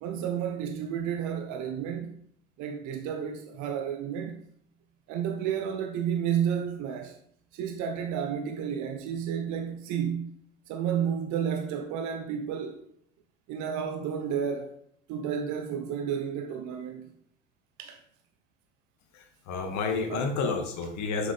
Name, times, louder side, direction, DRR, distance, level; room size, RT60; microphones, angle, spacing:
voice 1, 0.0-2.2 2.6-4.4 5.1-7.2 7.5-10.3 10.7-12.9 13.5-14.8 15.1-17.1 17.8-18.0 20.1-20.6, right 8 dB, 50° right, 1.0 m, -31 dB
voice 2, 19.1-21.3, left 4 dB, 50° left, 1.9 m, -30 dB
7.7 x 6.4 x 3.5 m
hypercardioid pair, 90°, 37 cm